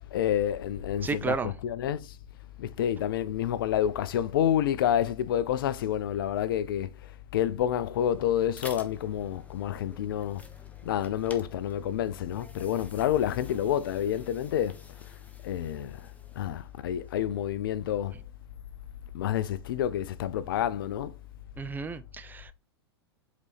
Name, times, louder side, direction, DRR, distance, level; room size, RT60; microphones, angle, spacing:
voice 1, 0.1-2.1 2.6-6.9 7.3-10.4 10.8-14.8 15.4-16.0 16.4-18.2 19.1-21.1, left 10 dB, 55° left, 0.6 m, -28 dB
voice 2, 1.0-1.5 21.6-22.5, right 5 dB, 15° right, 0.5 m, -32 dB
sound 1, 7.8-17.6, left 2 dB, 10° left, 1.1 m, -51 dB
8.1 x 4.1 x 3.3 m
figure-of-eight pair, 95°, 14 cm